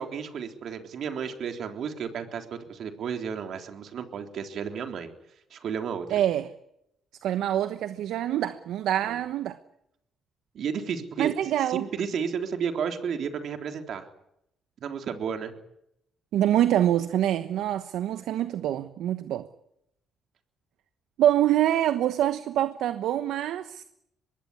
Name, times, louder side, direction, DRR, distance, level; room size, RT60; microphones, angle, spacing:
voice 1, 0.0-5.1 5.5-6.2 9.0-9.2 10.5-11.3 11.7-14.1 14.8-15.5, right 7 dB, 65° right, 3.6 m, -32 dB
voice 2, 6.1-6.5 7.2-9.6 11.2-11.8 16.3-19.5 21.2-23.8, right 12 dB, 85° right, 1.1 m, -25 dB
24.0 x 20.5 x 9.9 m
cardioid pair, 90°, 0 cm